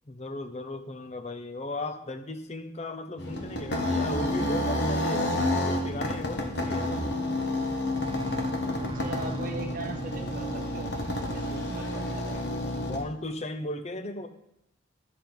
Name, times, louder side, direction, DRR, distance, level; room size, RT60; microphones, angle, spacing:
voice 1, 0.1-7.0 12.8-14.3, left 2 dB, 35° left, 8 dB, 0.7 m, -36 dB
sound 1, 3.2-13.0, left 1 dB, 60° left, 1.3 m, -30 dB
sound 2, 7.9-11.5, right 2 dB, 25° right, 0.4 m, -40 dB
voice 2, 8.8-12.5, right 3 dB, 45° right, 3 dB, 1.3 m, -40 dB
12.0 x 6.9 x 3.9 m, 0.83 s
head